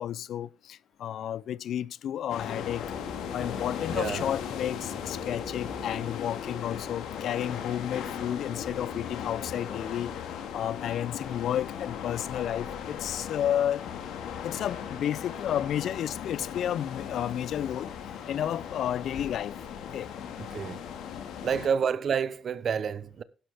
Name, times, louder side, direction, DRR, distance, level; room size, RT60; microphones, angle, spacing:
voice 1, 0.0-2.8 3.3-10.1 10.5-13.8 14.4-17.9 18.3-19.5 19.9-20.1, left 10 dB, 70° left, 0.4 m, -31 dB
sound 1, 2.3-21.7, left 8 dB, 85° left, 1.9 m, -37 dB
Bass guitar, 3.0-6.5 7.2-7.7 8.0-10.2, left 1 dB, 5° left, 5.4 m, -50 dB
voice 2, 3.9-4.2 20.4-20.8 21.4-23.2, right 7 dB, 55° right, 0.8 m, -29 dB
sound 2, 5.4-20.0, left 2 dB, 35° left, 5.6 m, -60 dB
11.5 x 11.5 x 3.5 m
cardioid pair, 90°, 0 cm